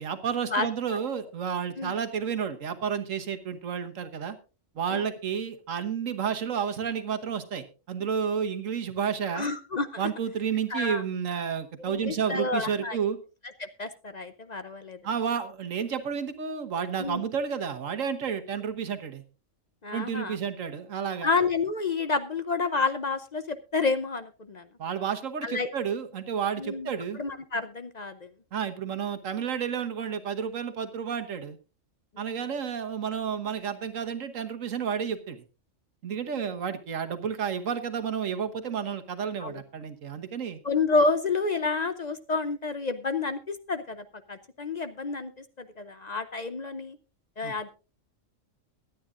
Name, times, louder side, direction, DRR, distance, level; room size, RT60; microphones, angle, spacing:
voice 1, 0.0-4.4 4.7-9.5 10.0-13.2 15.0-19.2 19.9-21.3 24.8-27.2 28.5-31.6 32.2-35.4 36.0-40.6 47.4-47.5, right 7 dB, 90° right, 9 dB, 1.6 m, -31 dB
voice 2, 9.3-10.1 10.7-11.0 11.8-13.0 13.6-15.0 17.0-17.2 19.8-20.4 21.2-24.7 25.4-25.7 26.6-28.3 32.2-32.4 36.3-36.5 39.4-39.6 40.6-47.0 47.4-47.7, left 4 dB, 40° left, 11 dB, 0.7 m, -29 dB
23.0 x 9.4 x 2.5 m, 0.32 s
omnidirectional pair, 1.3 m